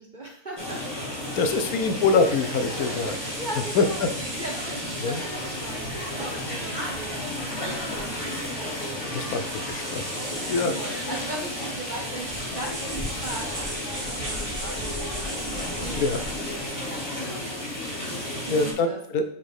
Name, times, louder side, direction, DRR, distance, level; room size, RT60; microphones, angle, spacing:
voice 1, 0.0-1.3 3.2-4.0 4.4-8.3 8.6-9.7 10.2-19.0, right 1 dB, 35° right, 0 dB, 0.9 m, -40 dB
sound 1, 0.6-18.7, left 1 dB, 15° left, 2.2 m, -33 dB
voice 2, 1.3-3.4 3.7-4.1 5.0-5.2 9.1-10.2 10.5-11.0 16.0-16.2 18.5-19.2, left 3 dB, 70° left, 7 dB, 1.1 m, -25 dB
sound 2, 1.3-16.7, equal, 55° right, 2.2 m, -39 dB
5.8 x 4.1 x 4.8 m, 0.65 s
omnidirectional pair, 1.7 m